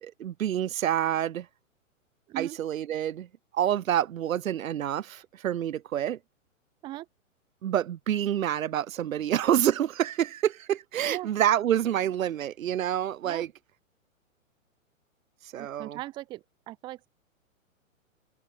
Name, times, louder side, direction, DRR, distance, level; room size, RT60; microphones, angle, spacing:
voice 1, 0.0-1.5 2.4-3.3 3.5-6.2 7.6-13.5 15.4-16.0, right 11 dB, 80° right, 0.7 m, -27 dB
voice 2, 15.6-17.1, right 16 dB, 10° right, 0.5 m, -39 dB
open air
hypercardioid pair, 125°, 41 cm